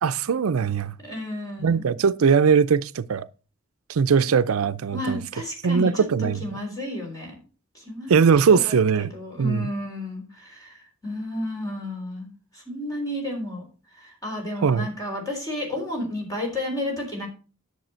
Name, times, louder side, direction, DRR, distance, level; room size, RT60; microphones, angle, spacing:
voice 1, 0.0-1.0 1.6-3.3 3.9-5.2 5.6-6.4 8.1-9.1 9.4-9.7 14.6-14.9, right 6 dB, 85° right, 0.5 m, -20 dB
voice 2, 1.0-1.9 4.1-4.2 4.9-6.0 6.4-7.4 7.7-8.2 8.5-12.3 12.5-13.6 14.0-17.3, left 1 dB, 15° left, 3.8 m, -32 dB
10.5 x 6.9 x 4.3 m
head